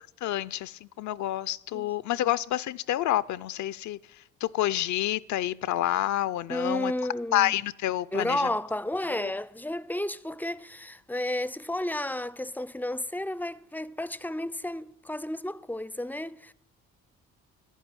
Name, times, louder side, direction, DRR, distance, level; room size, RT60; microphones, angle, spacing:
voice 1, 0.2-4.0 4.4-6.9 7.3-8.5 9.2-9.3, left 13 dB, 70° left, 0.5 m, -28 dB
voice 2, 6.5-7.5 8.1-16.5, left 1 dB, 5° left, 0.4 m, -32 dB
11.0 x 10.0 x 9.5 m
cardioid pair, 90°, 30 cm